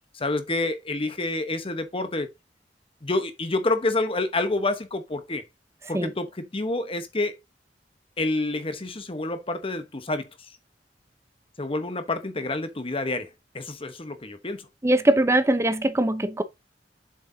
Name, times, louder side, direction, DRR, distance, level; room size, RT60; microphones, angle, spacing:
voice 1, 0.1-2.3 3.0-5.4 5.9-7.4 8.2-10.3 11.6-13.3 13.5-14.7, left 2 dB, 30° left, 1.1 m, -28 dB
voice 2, 14.8-16.4, right 1 dB, 15° right, 0.8 m, -21 dB
7.5 x 6.2 x 2.8 m
head